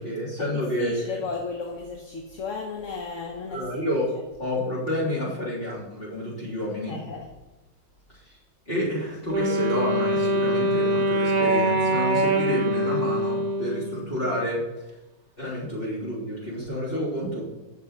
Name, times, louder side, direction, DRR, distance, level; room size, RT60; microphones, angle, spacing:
voice 1, 0.0-1.2 3.5-4.1 4.4-7.0 8.3-8.4 8.7-14.6 15.4-17.4, left 1 dB, 30° left, -6 dB, 3.9 m, -29 dB
voice 2, 0.8-3.9 6.9-7.3 15.4-15.5, left 4 dB, 50° left, 1 dB, 1.4 m, -34 dB
Wind instrument woodwind instrument, 9.3-14.3, right 1 dB, 55° right, 0.4 m, -24 dB
14.5 x 6.8 x 4.2 m, 1.0 s
omnidirectional pair, 2.0 m